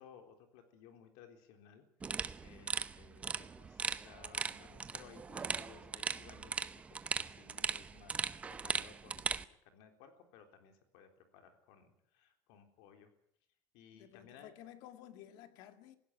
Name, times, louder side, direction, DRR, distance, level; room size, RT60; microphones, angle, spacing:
voice 1, 0.0-6.6 6.9-13.1 13.7-14.5, left 7 dB, 80° left, 3.7 m, -59 dB
sound 1, 2.0-9.4, right 5 dB, 15° right, 0.7 m, -39 dB
voice 2, 13.9-16.0, left 11 dB, 65° left, 2.0 m, -54 dB
18.5 x 16.0 x 9.6 m
cardioid pair, 165°, 8 cm